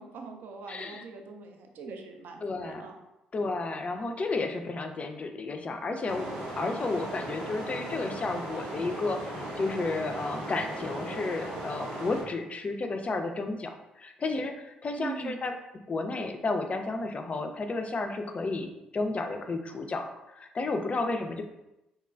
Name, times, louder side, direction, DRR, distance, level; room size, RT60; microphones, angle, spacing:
voice 1, 0.0-3.0 15.0-15.4, right 4 dB, 65° right, 3 dB, 0.4 m, -41 dB
voice 2, 0.7-1.0 2.4-2.9 3.3-15.5 15.9-21.4, left 3 dB, 35° left, 6 dB, 0.3 m, -32 dB
sound 1, 6.1-12.2, right 1 dB, 85° right, 0.8 m, -37 dB
2.9 x 2.2 x 2.3 m, 0.93 s
hypercardioid pair, 50°, 4 cm